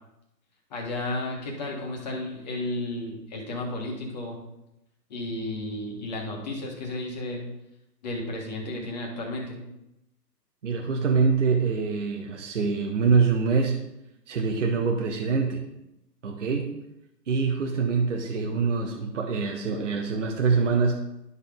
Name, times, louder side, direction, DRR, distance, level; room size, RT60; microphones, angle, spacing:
voice 1, 0.7-4.4 5.1-7.4 8.0-9.6, left 2 dB, 25° left, -1 dB, 1.4 m, -33 dB
voice 2, 10.6-13.8 14.3-15.6 16.2-16.8 17.3-21.0, right 5 dB, 45° right, 2 dB, 0.9 m, -24 dB
12.0 x 4.1 x 3.5 m, 0.88 s
hypercardioid pair, 155°, 50 cm